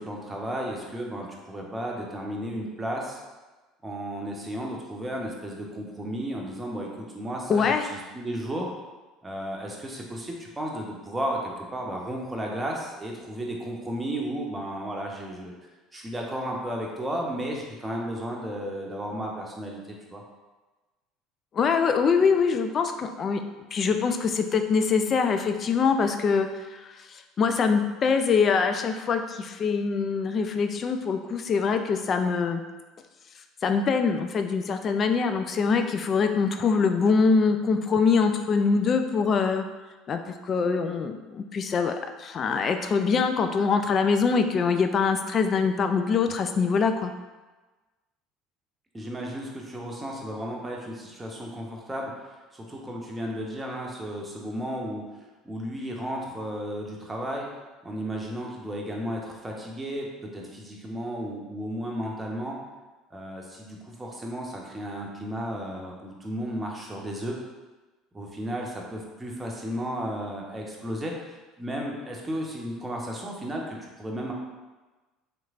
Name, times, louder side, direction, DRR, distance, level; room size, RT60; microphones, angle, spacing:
voice 1, 0.0-3.2 3.8-8.7 9.2-15.5 15.9-20.2 48.9-55.0 55.4-57.5 57.8-60.1 60.3-62.6 63.1-67.4 68.1-74.3, equal, 15° right, -1 dB, 0.7 m, -34 dB
voice 2, 7.5-7.8 21.5-23.4 23.7-26.5 26.8-26.9 27.4-32.6 33.6-39.6 40.1-47.1, left 5 dB, 40° left, 7 dB, 0.3 m, -24 dB
3.2 x 3.1 x 2.4 m, 1.2 s
hypercardioid pair, 70°, 0 cm